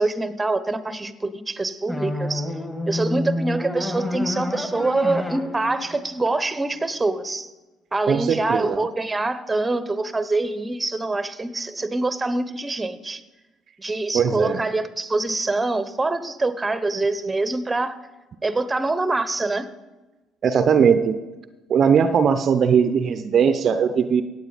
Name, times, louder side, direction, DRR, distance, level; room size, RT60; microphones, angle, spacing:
voice 1, 0.0-2.5 2.9-7.5 7.9-13.2 13.8-17.9 18.4-19.7, right 2 dB, 20° right, 14 dB, 0.9 m, -25 dB
sound 1, 1.9-7.0, left 1 dB, 15° left, 2.3 m, -29 dB
voice 2, 8.1-8.9 14.1-14.6 20.4-21.2 21.7-24.2, right 7 dB, 50° right, 10 dB, 0.6 m, -19 dB
16.0 x 8.8 x 4.0 m, 1.1 s
hypercardioid pair, 55°, 0 cm